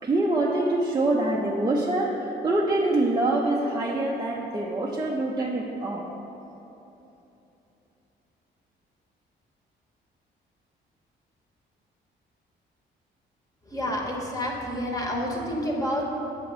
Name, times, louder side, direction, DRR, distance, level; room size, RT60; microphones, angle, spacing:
voice 1, 0.0-6.0, right 2 dB, 20° right, -3 dB, 0.6 m, -25 dB
voice 2, 13.7-16.0, equal, 15° left, -1 dB, 1.0 m, -29 dB
7.5 x 3.0 x 6.0 m, 3.0 s
cardioid pair, 90°, 20 cm